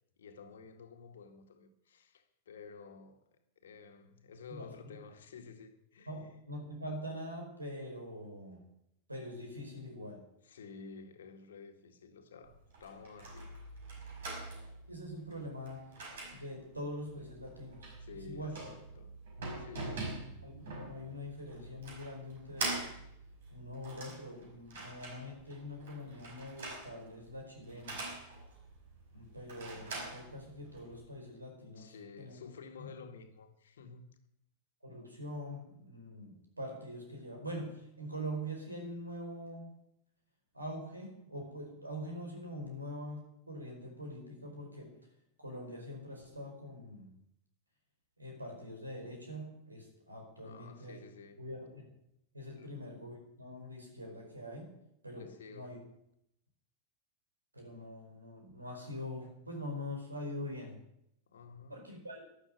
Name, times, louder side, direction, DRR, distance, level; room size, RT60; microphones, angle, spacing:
voice 1, 0.2-6.3 10.4-13.6 18.0-19.1 19.6-20.3 31.7-34.2 50.4-51.4 52.5-52.8 55.1-55.8 61.3-61.8, left 5 dB, 65° left, 1.9 m, -52 dB
voice 2, 4.5-5.0 6.1-8.6 9.1-10.2 14.9-15.9 16.3-17.9 18.3-18.6 19.8-20.6 20.9-22.8 23.5-28.0 29.1-32.4 32.8-32.9 34.8-39.7 40.5-44.9 45.4-47.1 48.2-51.0 51.4-51.8 52.3-54.7 55.0-55.8 57.5-60.8 61.7-62.2, equal, 85° right, 4.9 m, -44 dB
sound 1, 12.4-31.0, right 2 dB, 60° right, 5.5 m, -44 dB
12.5 x 11.5 x 8.1 m
figure-of-eight pair, 90°, 0 cm